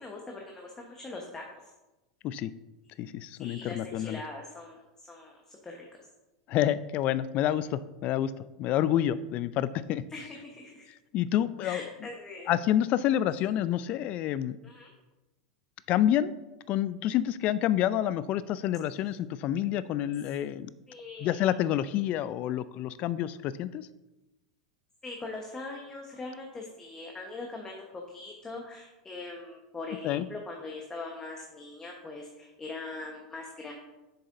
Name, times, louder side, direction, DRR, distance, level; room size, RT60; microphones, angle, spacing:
voice 1, 0.0-1.7 3.4-5.9 10.1-10.9 11.6-12.5 14.6-14.9 20.9-21.5 25.0-33.7, left 3 dB, 20° left, 0 dB, 1.1 m, -42 dB
voice 2, 3.0-4.2 6.5-8.3 8.6-10.0 11.1-11.8 12.5-14.6 15.9-16.3 16.7-20.7 21.2-23.9 30.0-30.3, left 11 dB, 45° left, 16 dB, 0.4 m, -28 dB
7.7 x 6.6 x 2.6 m, 1.0 s
hypercardioid pair, 95°, 3 cm